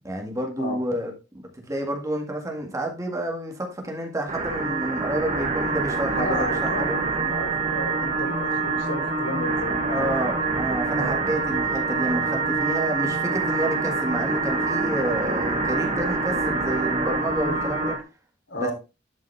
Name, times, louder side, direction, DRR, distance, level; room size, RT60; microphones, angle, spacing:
voice 1, 0.0-1.1 1.7-7.0 9.9-18.0 18.6-18.7, right 1 dB, 15° right, 1.8 m, -29 dB
sound 1, 4.3-18.0, right 3 dB, 35° right, 1.4 m, -26 dB
voice 2, 6.1-10.1 10.9-11.1 18.5-18.7, left 1 dB, 85° left, 3.0 m, -33 dB
11.5 x 5.4 x 3.3 m
head